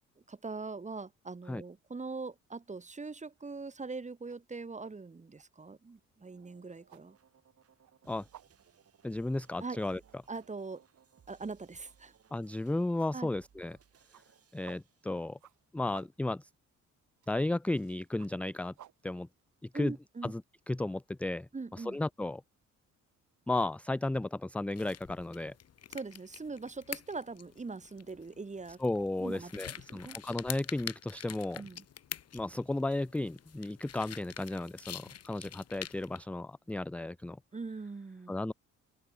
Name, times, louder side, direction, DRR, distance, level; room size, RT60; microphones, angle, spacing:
voice 1, 0.3-7.2 9.6-9.8 10.3-10.8 11.3-12.1 13.1-13.3 19.7-20.3 21.5-22.0 25.9-28.8 29.2-30.2 31.6-31.8 37.5-38.4, right 4 dB, 25° right, 2.5 m, -42 dB
sound 1, 2.6-3.0 3.3-20.2, right 12 dB, 75° right, 4.9 m, -60 dB
sound 2, 6.2-15.4, right 7 dB, 50° right, 6.7 m, -65 dB
voice 2, 9.0-10.0 12.3-13.8 14.5-15.4 15.7-16.5 17.3-18.7 19.0-19.3 19.6-19.9 20.2-20.4 20.7-22.4 23.5-25.5 28.8-31.6 32.3-37.4 38.3-38.5, left 2 dB, 5° left, 0.4 m, -34 dB
sound 3, 24.7-36.2, left 9 dB, 55° left, 1.7 m, -46 dB
cardioid pair, 90°, 30 cm